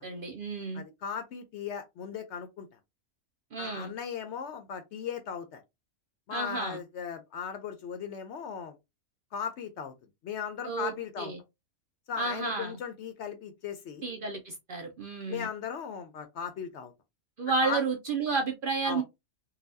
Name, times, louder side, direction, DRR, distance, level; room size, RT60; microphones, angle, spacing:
voice 1, 0.0-0.8 3.5-3.9 6.3-6.8 10.6-11.4 12.2-12.8 14.0-15.5 17.4-19.0, right 4 dB, 55° right, 0.6 m, -32 dB
voice 2, 0.7-2.8 3.6-5.6 6.3-8.8 9.3-9.9 10.2-11.3 12.1-14.0 15.3-16.9 17.6-17.8 18.8-19.0, left 7 dB, 65° left, 0.8 m, -37 dB
4.0 x 2.3 x 2.5 m
omnidirectional pair, 1.4 m